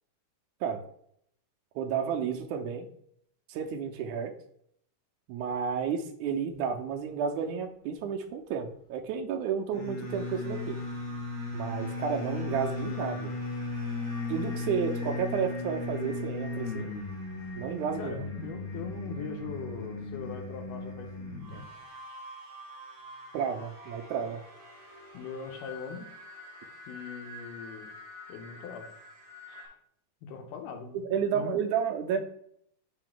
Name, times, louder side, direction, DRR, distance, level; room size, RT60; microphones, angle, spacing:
voice 1, 1.8-2.9 3.5-4.3 5.3-10.8 11.5-13.3 14.3-16.9 17.6-18.2 23.3-24.4 31.1-32.2, right 7 dB, 80° right, 4 dB, 2.1 m, -31 dB
sound 1, 9.7-21.6, left 3 dB, 45° left, 2.1 m, -36 dB
sound 2, 10.0-29.7, left 1 dB, 25° right, 1.4 m, -49 dB
voice 2, 18.0-21.7 25.1-26.1 26.9-27.9 28.3-28.9 29.5-29.8 30.2-31.7, left 5 dB, 90° left, 4 dB, 2.6 m, -41 dB
6.0 x 5.6 x 3.7 m, 0.67 s
omnidirectional pair, 3.7 m